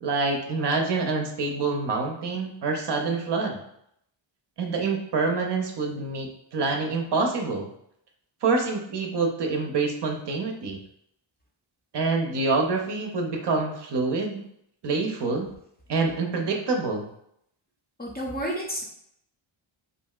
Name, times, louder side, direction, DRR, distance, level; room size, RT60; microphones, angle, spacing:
voice 1, 0.0-3.6 4.6-7.7 8.4-10.8 11.9-14.4 14.8-15.5 15.9-17.1, right 3 dB, 55° right, 2 dB, 0.6 m, -26 dB
voice 2, 18.0-18.8, equal, 20° left, -3 dB, 0.5 m, -30 dB
2.8 x 2.6 x 2.3 m, 0.73 s
wide cardioid pair, 115°, 49 cm